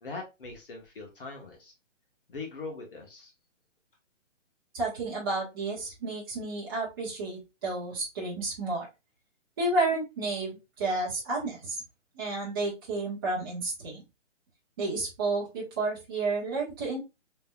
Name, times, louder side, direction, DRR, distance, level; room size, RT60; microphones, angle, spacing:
voice 1, 0.0-1.7 2.3-3.3, left 3 dB, 45° left, 1 dB, 1.4 m, -41 dB
voice 2, 4.7-8.9 9.6-11.8 12.1-14.0 14.8-17.0, right 2 dB, 20° right, -5 dB, 1.2 m, -31 dB
3.8 x 3.3 x 2.3 m, 0.24 s
hypercardioid pair, 170°, 38 cm